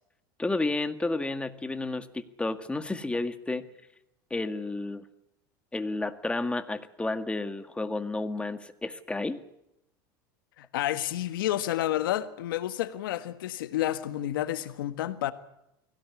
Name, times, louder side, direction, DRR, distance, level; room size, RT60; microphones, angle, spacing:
voice 1, 0.4-3.7 4.3-5.1 5.7-9.4, left 2 dB, 10° left, 1.9 m, -31 dB
voice 2, 10.6-15.3, left 13 dB, 85° left, 1.7 m, -30 dB
23.5 x 17.0 x 9.8 m
supercardioid pair, 100°, 11 cm